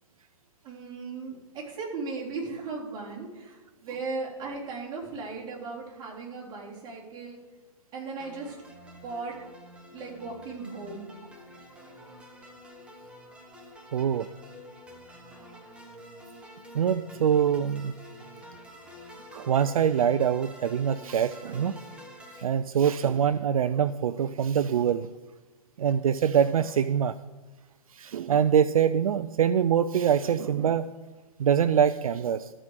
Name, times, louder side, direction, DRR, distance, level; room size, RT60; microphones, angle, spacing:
voice 1, 0.6-7.4 7.9-8.6 9.0-9.4 9.9-11.1, right 4 dB, 25° right, -5 dB, 3.6 m, -37 dB
sound 1, 8.2-22.4, equal, 5° right, 1.3 m, -48 dB
voice 2, 13.9-14.3 16.7-17.9 19.3-21.8 22.4-25.1 25.8-27.1 27.9-30.9 31.4-32.5, right 8 dB, 70° right, 13 dB, 0.4 m, -24 dB
13.5 x 4.9 x 6.5 m, 1.2 s
hypercardioid pair, 125°, 19 cm